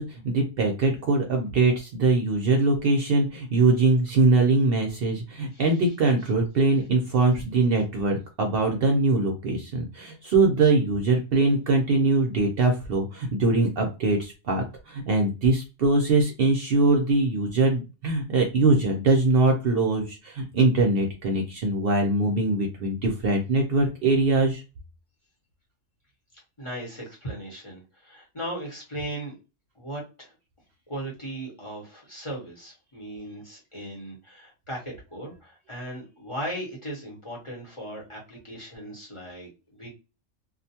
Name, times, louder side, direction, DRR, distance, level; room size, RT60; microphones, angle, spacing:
voice 1, 0.0-24.6, right 3 dB, 60° right, 1 dB, 0.7 m, -22 dB
voice 2, 5.5-5.9 26.6-29.3 29.7-30.3 30.9-39.9, right 1 dB, 30° left, -3 dB, 0.8 m, -37 dB
2.4 x 2.2 x 2.7 m, 0.29 s
omnidirectional pair, 1.3 m